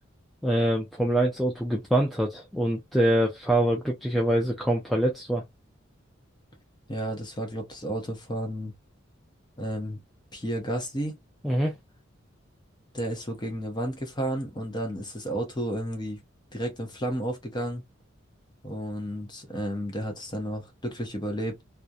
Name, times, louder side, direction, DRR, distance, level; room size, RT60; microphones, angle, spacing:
voice 1, 0.4-5.4 11.4-11.7, right 1 dB, ahead, 0.3 m, -24 dB
voice 2, 6.9-8.7 9.6-10.0 10.3-11.2 12.9-16.2 16.5-17.8 18.6-21.6, equal, 20° left, 0.7 m, -32 dB
2.4 x 2.0 x 2.7 m
head